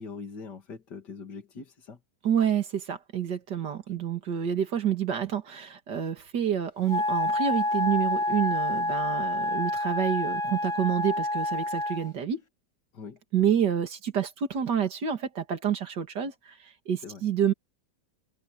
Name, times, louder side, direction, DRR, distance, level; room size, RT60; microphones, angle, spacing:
voice 1, 0.0-2.0 12.9-13.2 17.0-17.2, left 5 dB, 70° left, 3.0 m, -42 dB
voice 2, 2.2-12.4 13.3-16.6 16.9-17.5, right 9 dB, 75° right, 2.6 m, -28 dB
Wind instrument woodwind instrument, 6.9-12.1, left 1 dB, 30° left, 0.6 m, -28 dB
omnidirectional pair, 1.9 m